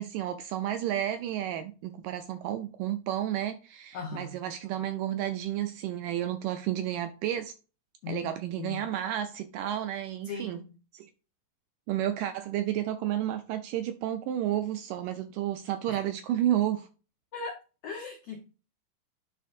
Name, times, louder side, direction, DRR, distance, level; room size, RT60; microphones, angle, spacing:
voice 1, 0.0-7.5 8.1-10.6 10.9-11.1 11.9-16.9, right 12 dB, 80° right, 2.0 m, -31 dB
voice 2, 3.9-4.3 8.0-8.8 10.2-10.7 15.9-16.0 17.3-17.5 17.8-18.4, left 5 dB, 85° left, 1.4 m, -38 dB
11.0 x 3.7 x 2.5 m
omnidirectional pair, 4.2 m